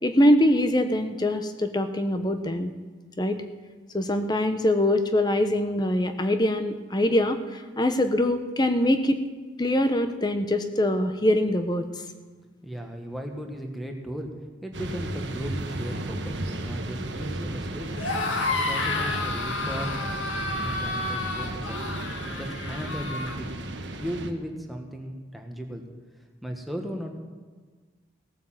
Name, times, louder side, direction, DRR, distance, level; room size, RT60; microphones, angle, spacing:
voice 1, 0.0-2.7 3.2-3.4 3.9-9.2 9.6-11.9, left 1 dB, 20° left, 8 dB, 0.9 m, -23 dB
voice 2, 12.6-14.3 14.6-19.9 20.5-21.8 22.4-23.5 24.0-25.8 26.4-27.1, equal, ahead, 2 dB, 1.4 m, -36 dB
sound 1, 14.7-24.3, right 1 dB, 70° right, 1.3 m, -34 dB
sound 2, 17.9-23.4, left 3 dB, 90° left, 1.8 m, -30 dB
17.0 x 9.2 x 7.6 m, 1.4 s
head